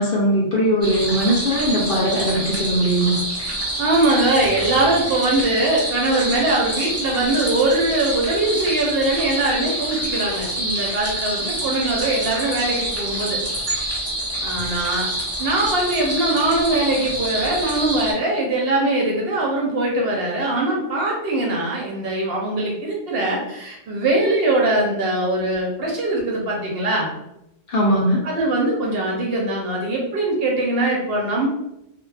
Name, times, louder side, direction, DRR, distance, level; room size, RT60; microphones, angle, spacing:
voice 1, 0.0-3.2 27.7-28.2, equal, 60° left, -2 dB, 0.6 m, -19 dB
sound 1, 0.8-18.1, right 1 dB, 25° right, 0.3 m, -27 dB
voice 2, 3.8-13.4 14.4-15.1 15.4-27.1 28.2-31.5, right 2 dB, 65° right, -2 dB, 0.7 m, -21 dB
2.1 x 2.0 x 3.1 m, 0.85 s
omnidirectional pair, 1.3 m